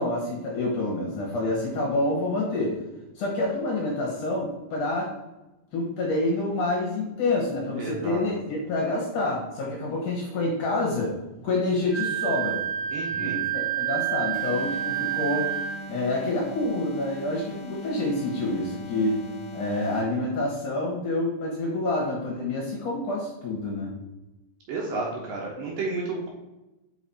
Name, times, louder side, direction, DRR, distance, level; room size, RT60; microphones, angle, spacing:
voice 1, 0.0-2.8 3.2-5.1 5.7-11.1 11.4-12.6 13.2-15.5 15.9-19.2 19.5-23.9, left 2 dB, 65° left, -2 dB, 2.2 m, -27 dB
voice 2, 7.8-8.2 12.9-13.4 24.7-26.3, right 3 dB, 65° right, -2 dB, 2.4 m, -31 dB
Wind instrument woodwind instrument, 11.9-15.8, right 12 dB, 50° right, 1.2 m, -28 dB
sound 1, 14.3-20.2, right 1 dB, 90° left, 2.8 m, -41 dB
6.0 x 5.5 x 4.2 m, 1.0 s
omnidirectional pair, 4.9 m